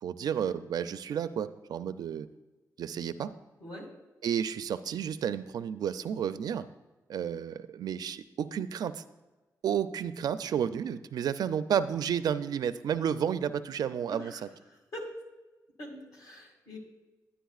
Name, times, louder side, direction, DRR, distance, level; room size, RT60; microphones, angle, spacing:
voice 1, 0.0-2.3 2.8-3.3 4.2-6.6 7.1-9.0 9.6-14.4, right 8 dB, 70° right, 12 dB, 0.4 m, -31 dB
voice 2, 14.1-14.4 14.9-15.1 15.8-16.8, equal, 60° left, 0 dB, 2.2 m, -43 dB
10.0 x 10.0 x 2.4 m, 1.2 s
wide cardioid pair, 120°, 7 cm